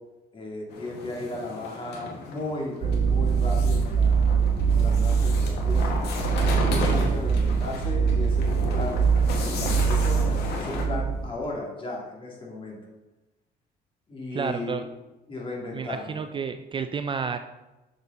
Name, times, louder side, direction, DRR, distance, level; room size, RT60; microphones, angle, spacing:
voice 1, 0.3-4.3 4.7-5.9 6.4-10.2 10.5-12.8 14.1-14.9 15.3-16.2, left 2 dB, 30° left, -2 dB, 2.6 m, -35 dB
sound 1, 0.7-10.8, left 3 dB, 80° left, 1.8 m, -34 dB
sound 2, 2.8-11.3, right 5 dB, 70° right, 1.5 m, -23 dB
voice 2, 14.3-14.9 15.7-17.4, right 6 dB, 30° right, 9 dB, 0.4 m, -30 dB
7.1 x 6.7 x 4.0 m, 1.0 s
cardioid pair, 110°, 17 cm